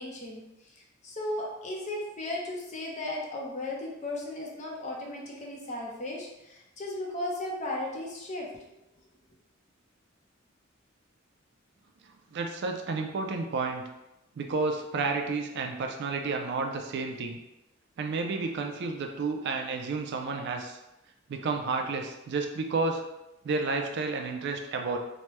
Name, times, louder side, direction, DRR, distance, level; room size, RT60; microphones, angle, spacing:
voice 1, 0.0-8.6, left 1 dB, 35° left, -1 dB, 0.6 m, -36 dB
voice 2, 12.0-13.8 14.4-17.4 18.0-20.8 21.3-23.0 23.4-25.0, right 4 dB, 55° right, 4 dB, 0.4 m, -31 dB
3.1 x 2.1 x 3.0 m, 0.94 s
head